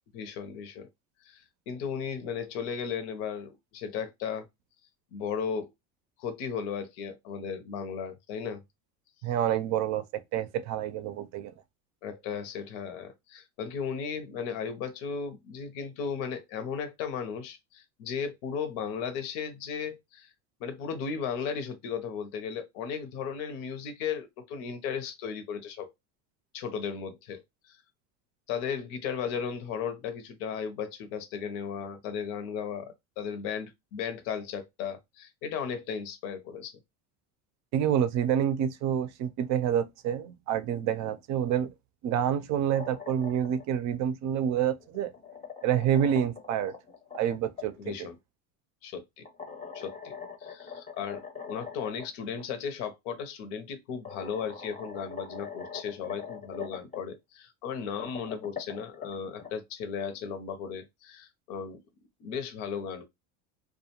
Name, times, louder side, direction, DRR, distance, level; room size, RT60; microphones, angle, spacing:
voice 1, 0.1-0.9 1.2-4.5 5.1-5.7 6.2-8.6 12.0-20.3 20.6-25.9 26.5-27.8 28.5-36.7 47.8-48.2 48.8-49.3 49.7-50.1 50.4-61.8 62.2-63.1, left 6 dB, 70° left, 0.7 m, -35 dB
voice 2, 9.2-10.0 10.3-11.5 37.7-41.7 42.0-45.1 45.6-46.7 47.1-47.9, right 9 dB, 50° right, 0.5 m, -28 dB
sound 1, 42.5-43.6 44.8-47.7 49.3-52.1 52.4-52.5 53.5-53.6 54.1-57.0 57.8-59.5, left 6 dB, 20° left, 0.6 m, -42 dB
2.4 x 2.2 x 2.8 m
supercardioid pair, 115°, 37 cm